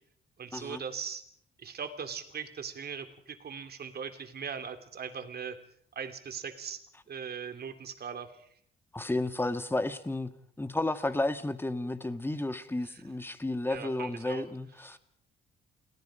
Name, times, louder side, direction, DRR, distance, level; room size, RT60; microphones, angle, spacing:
voice 1, 0.4-1.2 1.6-5.6 5.9-6.8 7.1-8.3 12.8-12.9 13.7-14.4 14.9-15.0, right 6 dB, 55° right, 7 dB, 3.0 m, -39 dB
voice 2, 8.9-10.3 10.6-15.0, left 2 dB, 10° left, 9 dB, 2.0 m, -32 dB
29.5 x 19.0 x 5.1 m, 0.64 s
cardioid pair, 90°, 20 cm